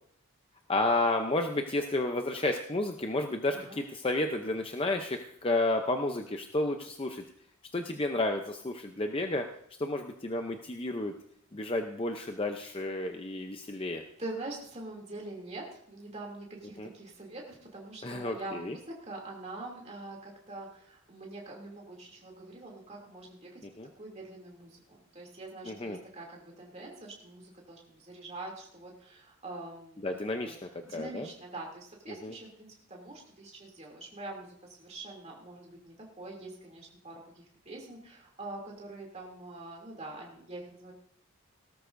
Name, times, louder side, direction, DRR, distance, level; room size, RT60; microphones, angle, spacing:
voice 1, 0.7-7.2 7.7-9.5 9.8-11.1 11.5-14.0 16.8-16.9 18.0-18.7 23.8-23.9 25.7-26.0 30.0-30.5 30.9-31.3 32.2-32.3, left 2 dB, 25° left, 4 dB, 0.6 m, -31 dB
voice 2, 3.5-3.8 14.2-23.6 24.0-30.2 30.4-30.5 30.8-40.9, right 2 dB, 30° right, -1 dB, 2.7 m, -44 dB
18.0 x 13.0 x 2.6 m, 0.67 s
head